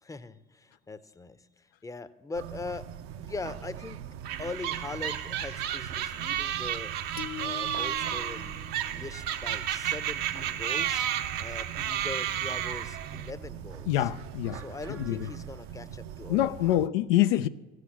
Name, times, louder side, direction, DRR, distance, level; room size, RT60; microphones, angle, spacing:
voice 1, 0.0-2.9 3.1-4.0 4.4-7.0 7.4-8.6 8.9-11.1 11.4-14.1 14.5-16.9, left 3 dB, 10° left, 0.7 m, -41 dB
sound 1, 2.3-16.9, right 9 dB, 50° right, 0.7 m, -42 dB
sound 2, 4.2-13.3, right 10 dB, 65° right, 1.1 m, -32 dB
sound 3, 7.2-9.6, left 14 dB, 45° left, 1.1 m, -44 dB
voice 2, 13.9-14.6 15.1-15.2 16.3-17.5, left 13 dB, 70° left, 0.5 m, -25 dB
15.5 x 6.5 x 7.1 m
hypercardioid pair, 65°, 31 cm